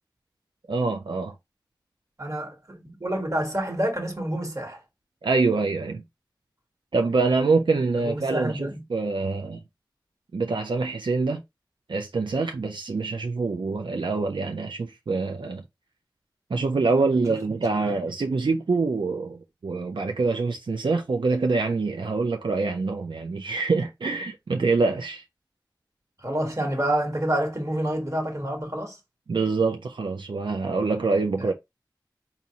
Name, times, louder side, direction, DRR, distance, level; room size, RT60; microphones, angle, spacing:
voice 1, 0.7-1.3 5.2-6.0 6.9-9.6 10.3-11.4 11.9-15.6 16.5-25.2 29.3-31.5, right 3 dB, 90° right, 0.4 m, -25 dB
voice 2, 2.2-4.8 8.0-8.8 17.3-17.4 26.2-29.0 31.4-31.5, right 1 dB, 40° right, 1.4 m, -28 dB
4.1 x 2.5 x 2.8 m
wide cardioid pair, 40°, 8 cm